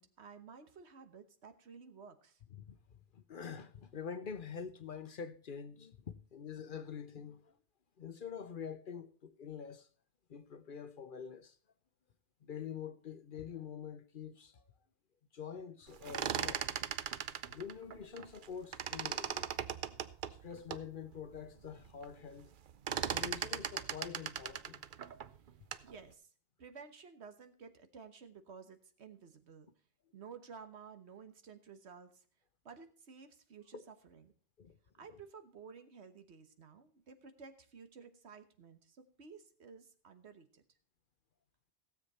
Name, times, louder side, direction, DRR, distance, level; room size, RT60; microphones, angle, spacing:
voice 1, 0.0-2.4 25.8-26.3 26.6-29.7 30.1-32.2 32.6-34.3 35.0-40.6, right 5 dB, 75° right, 1.4 m, -54 dB
voice 2, 2.5-7.6 8.0-9.9 10.3-11.6 12.4-14.6 15.3-16.7 17.5-19.5 20.3-22.5 23.1-24.8 33.7-33.8 34.6-34.8, left 7 dB, 55° left, 0.9 m, -46 dB
sound 1, 15.9-18.5 18.7-20.9 21.4-21.5 21.7-22.1 22.4-25.9, right 8 dB, 55° right, 0.7 m, -38 dB
16.5 x 7.4 x 4.2 m
omnidirectional pair, 1.1 m